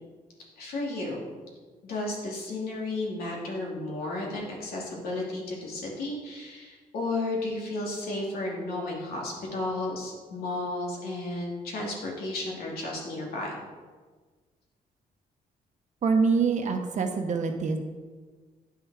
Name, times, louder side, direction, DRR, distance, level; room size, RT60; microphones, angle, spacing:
voice 1, 0.6-1.3 1.8-13.6, left 2 dB, 85° left, -3 dB, 2.6 m, -33 dB
voice 2, 16.0-17.8, right 5 dB, 55° right, 5 dB, 1.0 m, -25 dB
9.4 x 5.7 x 4.8 m, 1.4 s
cardioid pair, 115°, 15 cm